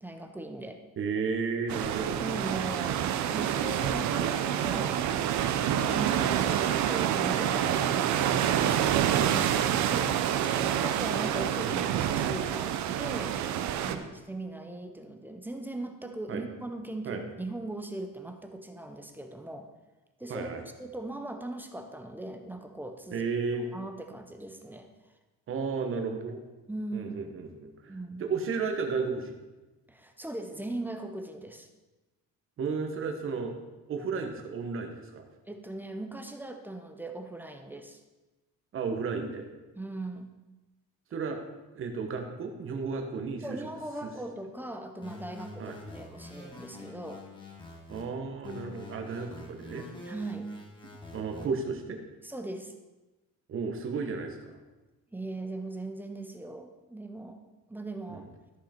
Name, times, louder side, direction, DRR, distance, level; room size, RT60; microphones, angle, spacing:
voice 1, 0.0-0.8 2.2-3.0 3.3-5.0 5.5-10.0 10.4-19.7 20.2-20.5 20.8-23.2 23.7-24.9 26.7-27.4 27.9-28.2 29.9-31.7 35.5-38.0 39.8-40.4 43.4-47.2 50.0-50.5 52.2-52.7 55.1-57.4 57.7-58.3, right 2 dB, 5° right, 5 dB, 0.6 m, -39 dB
voice 2, 1.0-2.2 9.9-10.2 13.9-14.1 16.3-16.4 17.0-17.2 20.3-20.6 23.1-23.7 25.5-26.4 26.9-27.9 28.2-29.4 32.6-33.6 33.9-35.2 38.7-39.5 41.1-41.4 41.7-43.7 44.0-44.1 45.6-45.7 47.9-49.8 51.1-52.0 53.5-54.6 58.1-58.3, right 5 dB, 40° right, 5 dB, 1.2 m, -33 dB
sound 1, 1.7-13.9, right 10 dB, 60° right, 0.7 m, -27 dB
sound 2, 45.0-48.0 48.4-51.5, left 2 dB, 15° left, 1.4 m, -46 dB
13.0 x 5.7 x 4.4 m, 1.1 s
cardioid pair, 160°, 33 cm